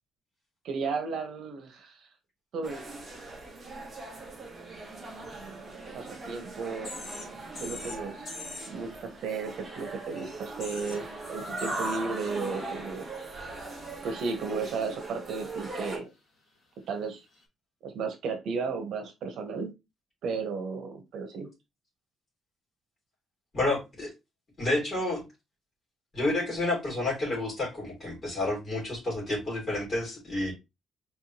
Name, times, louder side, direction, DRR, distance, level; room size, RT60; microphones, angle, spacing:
voice 1, 0.6-2.1 2.5-2.8 5.9-6.9 7.6-8.3 8.7-13.1 14.0-16.1 16.9-17.2 17.8-19.7 20.2-21.5, right 4 dB, 60° right, 1.1 m, -34 dB
sound 1, 2.6-16.0, right 2 dB, 20° right, 1.3 m, -40 dB
sound 2, 6.8-7.3 7.5-8.7 10.1-10.2 10.4-11.0 11.6-12.0 12.6-12.7 17.3-17.4, left 3 dB, 50° left, 2.0 m, -41 dB
voice 2, 23.5-24.1 24.6-25.2 26.1-30.5, left 2 dB, 30° left, 3.1 m, -30 dB
4.5 x 3.5 x 2.9 m
cardioid pair, 165°, 0 cm